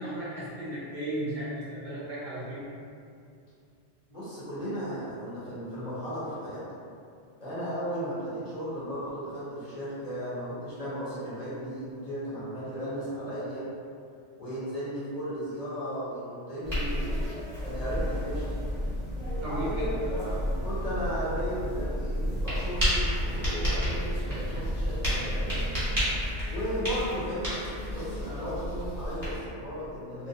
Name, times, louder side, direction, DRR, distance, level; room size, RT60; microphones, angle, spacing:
voice 1, 0.0-2.7 19.4-19.8, right 1 dB, 55° right, -8 dB, 0.6 m, -35 dB
voice 2, 4.1-6.6 7.4-13.7 14.4-17.1 17.6-18.4 19.4-25.8 26.5-27.6 27.9-30.3, equal, 40° left, -11 dB, 0.7 m, -35 dB
sound 1, 16.6-29.4, equal, 15° right, 1.0 m, -33 dB
Breathing / Bird, 17.6-26.2, equal, 70° left, 1.0 m, -33 dB
2.5 x 2.0 x 2.7 m, 2.4 s
omnidirectional pair, 1.2 m